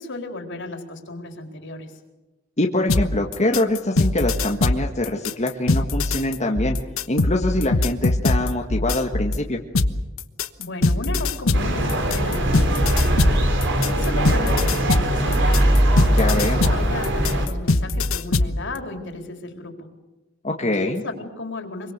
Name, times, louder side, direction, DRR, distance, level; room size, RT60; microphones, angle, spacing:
voice 1, 0.0-1.9 10.6-13.4 13.8-15.6 16.3-19.9 20.7-21.9, left 2 dB, 60° left, 4 dB, 4.2 m, -34 dB
voice 2, 2.6-6.8 7.1-9.6 16.1-16.6 20.4-21.0, left 1 dB, 35° left, 1 dB, 1.7 m, -24 dB
sound 1, 2.9-9.4 9.7-18.6, left 2 dB, 85° left, 1.3 m, -22 dB
sound 2, 11.5-17.5, right 1 dB, 60° right, 3.9 m, -20 dB
25.5 x 24.0 x 6.8 m, 1.1 s
head